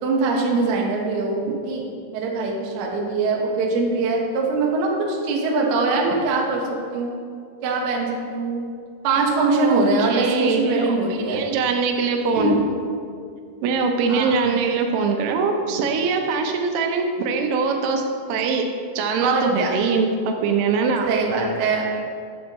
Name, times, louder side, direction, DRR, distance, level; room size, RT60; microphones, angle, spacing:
voice 1, 0.0-1.8 2.1-7.1 7.6-8.7 9.0-11.4 12.3-12.6 14.1-14.3 19.2-19.7 21.1-21.9, right 3 dB, 70° right, -1 dB, 2.6 m, -22 dB
voice 2, 9.3-12.6 13.6-18.0 18.3-18.7 19.0-21.1, right 4 dB, 90° right, 4 dB, 3.6 m, -22 dB
14.0 x 7.5 x 3.0 m, 2.2 s
omnidirectional pair, 5.9 m